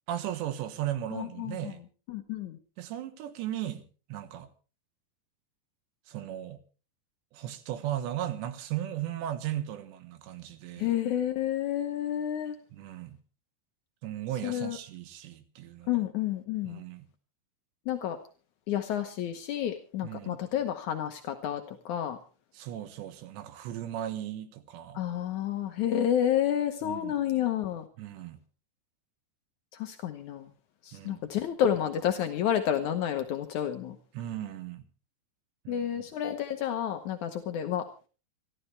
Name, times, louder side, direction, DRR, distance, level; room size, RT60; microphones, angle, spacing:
voice 1, 0.1-1.8 2.8-4.5 6.1-6.6 7.3-10.9 12.7-13.2 14.0-16.0 16.7-17.1 20.0-20.4 22.6-25.0 26.8-27.1 28.0-28.4 30.9-31.2 34.2-34.8 35.7-35.9, right 12 dB, 80° right, 10 dB, 3.6 m, -36 dB
voice 2, 1.1-1.8 2.1-2.6 10.8-12.6 14.4-14.8 15.9-16.8 17.9-18.2 18.7-22.2 24.9-27.9 29.7-30.5 30.8-34.0 35.7-38.1, left 10 dB, 75° left, 6 dB, 1.7 m, -30 dB
27.0 x 12.5 x 3.3 m, 0.36 s
omnidirectional pair, 5.0 m